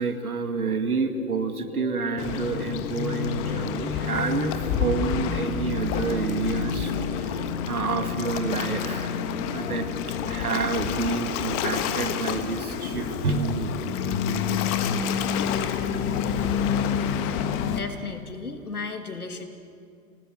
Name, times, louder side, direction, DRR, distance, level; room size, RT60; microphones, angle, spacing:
voice 1, 0.0-9.2 9.5-13.7 14.0-14.6 15.3-15.5 15.9-16.0, right 4 dB, 75° right, 7 dB, 2.2 m, -29 dB
sound 1, 0.6-17.0, left 3 dB, 55° left, 3.3 m, -39 dB
Waves surf, 2.2-17.8, left 7 dB, 30° left, 1.5 m, -28 dB
voice 2, 17.7-19.4, left 4 dB, 85° left, 6 dB, 2.6 m, -35 dB
27.0 x 18.5 x 8.0 m, 2.3 s
figure-of-eight pair, 115°, 44 cm